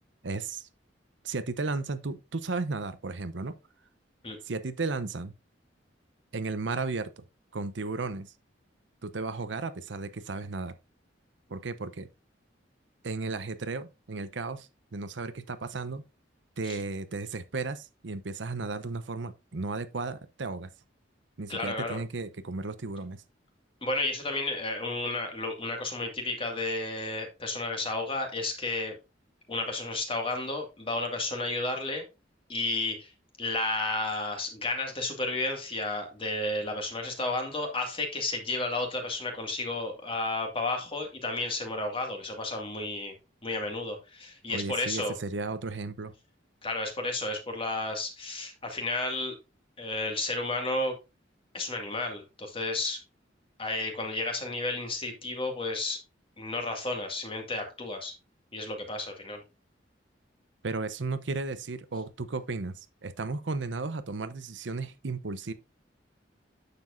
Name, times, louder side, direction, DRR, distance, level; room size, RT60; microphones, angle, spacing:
voice 1, 0.2-0.7 1.2-3.5 4.5-5.3 6.3-7.1 7.5-8.3 9.0-10.7 11.5-12.1 13.0-16.0 16.6-20.7 21.4-23.2 44.5-46.1 60.6-65.5, right 3 dB, 70° right, 0.8 m, -34 dB
voice 2, 21.5-22.0 23.8-29.0 29.5-32.0 32.5-33.1 33.4-43.1 43.4-45.2 46.6-49.3 49.8-51.0 51.5-53.0 53.6-56.0 56.4-58.1 58.5-59.4, left 2 dB, 30° left, 2.0 m, -32 dB
9.5 x 6.9 x 2.6 m
head